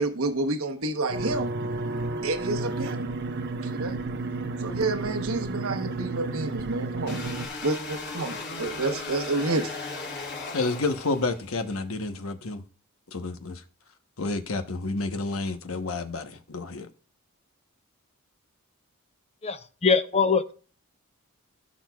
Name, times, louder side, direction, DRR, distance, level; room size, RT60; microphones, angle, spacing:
voice 1, 0.0-1.5 2.2-3.1 3.6-4.0 4.6-7.2 7.6-10.1, right 3 dB, 80° right, 1.1 m, -29 dB
sound 1, 1.1-7.5, right 2 dB, 55° right, 0.8 m, -32 dB
sound 2, 7.1-11.6, left 3 dB, 55° left, 2.9 m, -37 dB
voice 2, 10.5-12.6 13.1-13.6 14.2-16.9, left 3 dB, 75° left, 1.0 m, -30 dB
voice 3, 19.4-20.5, left 5 dB, 30° left, 0.7 m, -23 dB
16.5 x 6.3 x 2.4 m
head